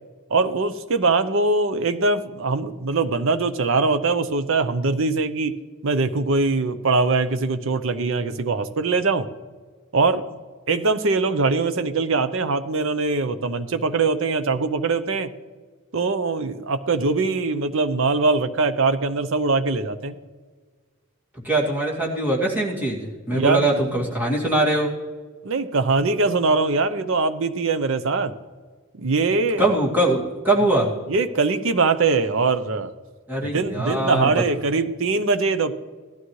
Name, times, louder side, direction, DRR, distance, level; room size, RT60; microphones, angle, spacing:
voice 1, 0.3-5.5 5.8-9.3 9.9-10.3 10.7-15.3 15.9-20.2 23.3-23.8 25.4-28.3 28.9-29.7 31.1-32.9 33.4-35.7, right 3 dB, 60° right, 11 dB, 0.7 m, -22 dB
voice 2, 21.4-24.9 29.6-30.9 33.3-34.3, right 1 dB, 10° right, -5 dB, 2.3 m, -22 dB
17.0 x 12.5 x 3.2 m, 1.5 s
head